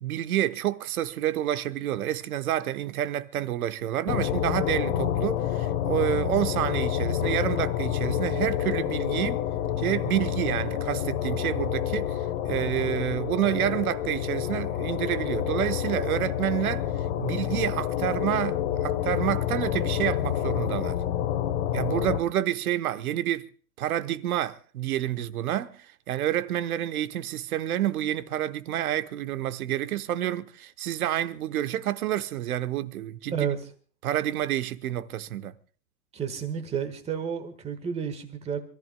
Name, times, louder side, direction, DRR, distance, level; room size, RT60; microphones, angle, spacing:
voice 1, 0.0-9.4 9.8-12.2 12.5-16.9 17.2-21.0 21.7-23.5 23.8-33.5 34.0-35.5, right 12 dB, 60° right, 1.1 m, -29 dB
sound 1, 4.1-22.2, left 11 dB, 40° left, 1.1 m, -28 dB
voice 2, 36.1-38.6, right 7 dB, 15° right, 1.4 m, -31 dB
27.0 x 14.0 x 2.2 m
hypercardioid pair, 145°, 48 cm